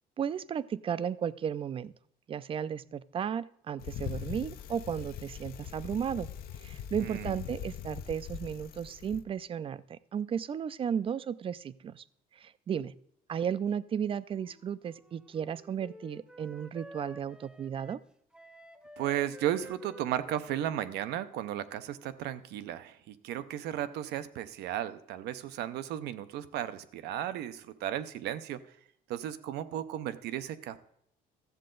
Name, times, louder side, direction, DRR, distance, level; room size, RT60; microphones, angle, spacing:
voice 1, 0.2-1.9 2.3-6.3 6.6-12.0 12.3-12.9 13.3-18.0, right 8 dB, 30° right, 18 dB, 0.4 m, -34 dB
Bicycle, 3.8-9.2, left 10 dB, 65° left, 0.6 m, -41 dB
voice 2, 7.0-7.4 19.0-28.6 29.1-30.8, right 11 dB, 80° right, 12 dB, 0.7 m, -35 dB
Wind instrument woodwind instrument, 14.3-22.3, equal, 5° right, 0.8 m, -52 dB
13.5 x 7.5 x 3.8 m, 0.71 s
cardioid pair, 110°, 17 cm